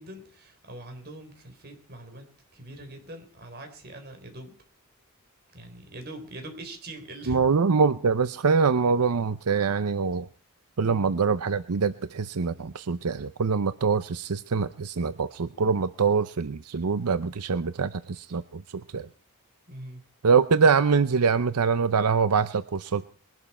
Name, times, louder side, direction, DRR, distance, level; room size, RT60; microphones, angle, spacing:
voice 1, 0.0-2.3 2.5-4.5 5.5-7.4 19.7-20.0, right 1 dB, 45° right, 5 dB, 4.0 m, -42 dB
voice 2, 7.3-10.3 10.8-18.6 18.9-19.1 20.2-23.1, right 5 dB, 90° right, 13 dB, 0.6 m, -24 dB
21.5 x 12.0 x 4.3 m, 0.41 s
head